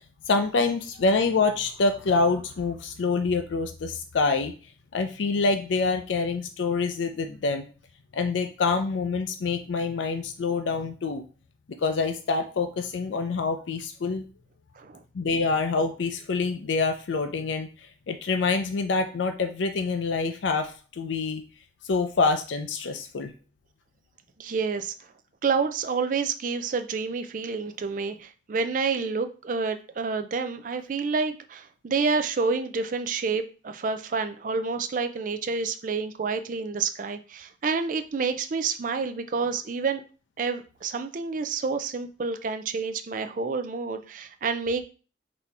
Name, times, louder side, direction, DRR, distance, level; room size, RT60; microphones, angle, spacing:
voice 1, 0.0-4.5 4.9-7.7 8.1-11.2 11.7-14.2 15.1-21.4 21.8-23.3, left 4 dB, 90° left, 7 dB, 0.5 m, -26 dB
voice 2, 24.4-24.9 25.4-40.0 40.4-44.8, right 4 dB, 45° right, 8 dB, 0.4 m, -28 dB
4.1 x 2.8 x 4.5 m, 0.37 s
head